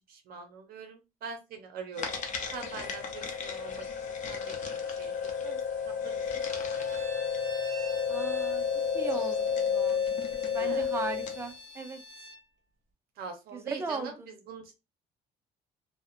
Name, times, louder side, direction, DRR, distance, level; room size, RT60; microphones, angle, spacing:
voice 1, 0.1-2.2 2.5-6.2 6.7-7.0 10.4-10.8 13.2-14.8, right 5 dB, 65° right, 5 dB, 0.6 m, -44 dB
sound 1, 1.9-11.5, left 6 dB, 45° left, 0.7 m, -32 dB
Bowed string instrument, 6.4-12.4, equal, 45° right, 1.0 m, -46 dB
voice 2, 8.1-8.6 8.9-9.5 9.7-10.1 10.5-12.0 13.5-14.3, right 3 dB, 15° right, 4 dB, 0.5 m, -37 dB
2.7 x 2.1 x 2.4 m, 0.27 s
cardioid pair, 110°, 17 cm